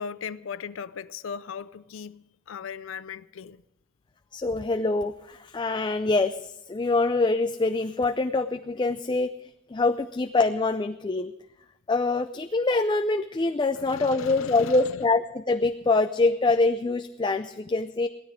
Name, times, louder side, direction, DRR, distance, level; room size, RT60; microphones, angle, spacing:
voice 1, 0.0-3.6 13.7-14.8, left 6 dB, 85° left, 0.5 m, -38 dB
voice 2, 4.3-6.4 6.7-9.3 9.7-11.3 11.9-18.1, left 3 dB, 25° left, 0.4 m, -24 dB
17.0 x 13.0 x 5.0 m
head